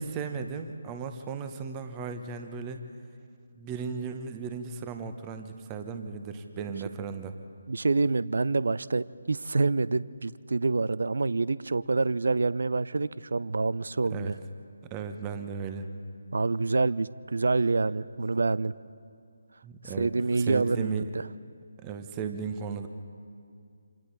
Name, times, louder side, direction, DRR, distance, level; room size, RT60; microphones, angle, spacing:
voice 1, 0.0-2.8 3.5-7.3 14.1-14.3 14.9-15.9 19.6-21.1 21.8-22.9, right 6 dB, 15° right, 8 dB, 1.0 m, -36 dB
voice 2, 7.7-14.4 16.3-18.7 20.0-21.2, right 3 dB, 60° right, 18 dB, 0.5 m, -27 dB
27.0 x 27.0 x 4.1 m, 2.3 s
figure-of-eight pair, 150°, 0 cm